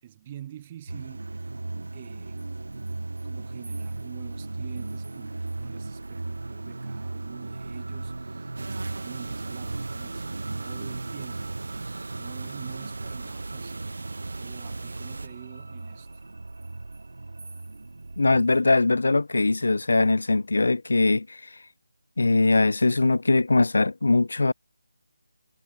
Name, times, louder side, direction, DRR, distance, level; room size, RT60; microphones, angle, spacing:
voice 1, 0.0-1.5 1.9-2.5 3.2-11.6 12.2-13.9 14.4-16.2, right 11 dB, 15° right, 4.2 m, -46 dB
sound 1, 0.9-18.6, right 2 dB, 85° right, 2.4 m, -37 dB
sound 2, 8.6-15.3, right 3 dB, 60° right, 3.2 m, -38 dB
voice 2, 18.2-21.4 22.2-24.5, left 3 dB, 70° left, 0.5 m, -21 dB
figure-of-eight pair, 180°, 0 cm